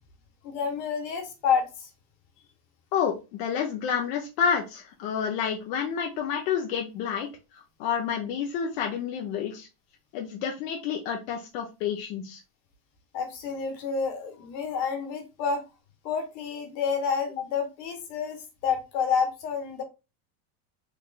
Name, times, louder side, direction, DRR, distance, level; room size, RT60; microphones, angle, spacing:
voice 1, 0.4-1.9 13.1-15.6 16.0-19.8, left 6 dB, 90° left, 5 dB, 1.5 m, -29 dB
voice 2, 2.9-7.3 7.5-9.7 10.1-12.4, left 7 dB, 70° left, 1 dB, 1.0 m, -29 dB
3.5 x 3.5 x 2.5 m, 0.27 s
cardioid pair, 155°, 48 cm